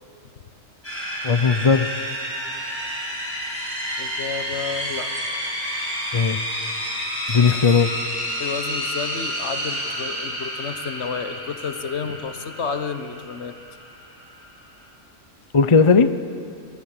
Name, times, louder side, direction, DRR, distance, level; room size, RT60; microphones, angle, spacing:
sound 1, 0.8-14.9, equal, 10° left, 6.9 m, -30 dB
voice 1, 1.2-1.9 6.1-6.4 7.3-7.9 15.5-16.1, left 5 dB, 30° left, 11 dB, 0.6 m, -17 dB
voice 2, 4.0-5.1 8.4-13.6, left 5 dB, 60° left, 9 dB, 1.4 m, -31 dB
sound 2, 4.7-5.3 6.9-7.8, right 1 dB, 85° right, 7.6 m, -47 dB
25.5 x 19.0 x 8.9 m, 2.4 s
omnidirectional pair, 1.4 m